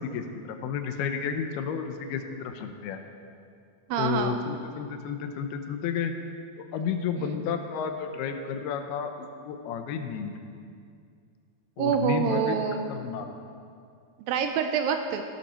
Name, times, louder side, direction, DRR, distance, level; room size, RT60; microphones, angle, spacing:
voice 1, 0.0-3.0 4.0-6.1 6.6-10.3 11.8-12.6 12.9-13.3, left 6 dB, 85° left, 6 dB, 2.8 m, -32 dB
voice 2, 3.9-4.4 7.2-7.3 11.8-12.9 14.3-15.2, right 7 dB, 80° right, 6 dB, 2.2 m, -26 dB
16.5 x 12.0 x 4.3 m, 2.3 s
omnidirectional pair, 4.5 m